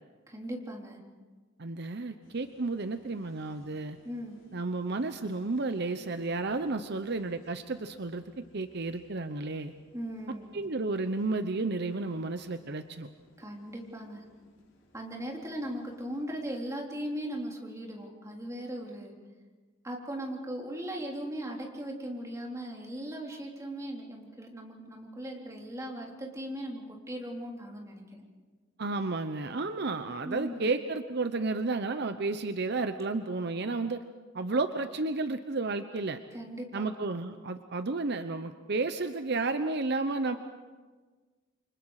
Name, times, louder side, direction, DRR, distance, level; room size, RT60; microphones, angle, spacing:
voice 1, 0.3-1.0 4.0-4.4 9.9-10.7 13.4-14.2 14.9-19.2 19.8-28.2 30.2-30.7 36.3-36.8, right 1 dB, 15° right, -1 dB, 3.3 m, -38 dB
voice 2, 1.6-4.0 4.5-9.7 10.5-13.1 28.8-34.0 34.3-36.2 36.7-40.4, right 3 dB, 60° right, 9 dB, 0.9 m, -32 dB
sound 1, 2.2-16.3, left 1 dB, 80° left, 6.3 m, -63 dB
29.0 x 25.0 x 4.9 m, 1.4 s
head